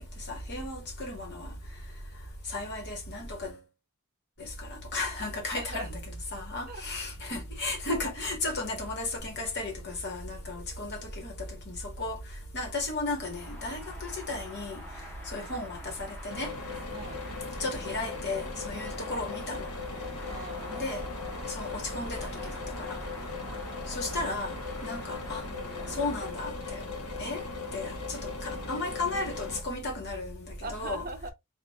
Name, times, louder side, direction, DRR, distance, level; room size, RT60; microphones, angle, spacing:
voice 1, 0.0-1.5 2.5-3.6 4.4-6.0 6.3-12.2 12.5-14.8 15.3-16.5 17.6-19.7 20.7-21.0 21.5-22.3 22.8-23.0 23.9-24.6 24.8-25.4 25.9-26.8 27.2-27.4 27.7-31.1, left 2 dB, 50° left, 1.6 m, -34 dB
voice 2, 5.6-5.9 6.7-6.8 16.9-17.3 20.3-21.1 30.6-31.3, right 2 dB, 40° right, 0.7 m, -40 dB
sound 1, 13.1-26.3, left 1 dB, 10° left, 1.3 m, -47 dB
sound 2, 16.3-29.6, left 4 dB, 80° left, 1.2 m, -39 dB
4.0 x 2.5 x 3.5 m
head